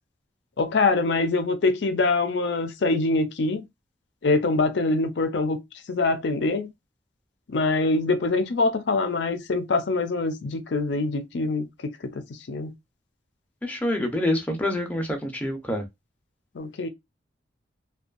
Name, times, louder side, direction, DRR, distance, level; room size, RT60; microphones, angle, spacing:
voice 1, 0.6-3.6 4.2-5.6 5.9-6.7 7.5-12.7 16.6-16.9, left 3 dB, 70° left, 0.5 m, -24 dB
voice 2, 13.6-15.8, left 1 dB, 10° left, 0.5 m, -26 dB
2.5 x 2.2 x 2.4 m
head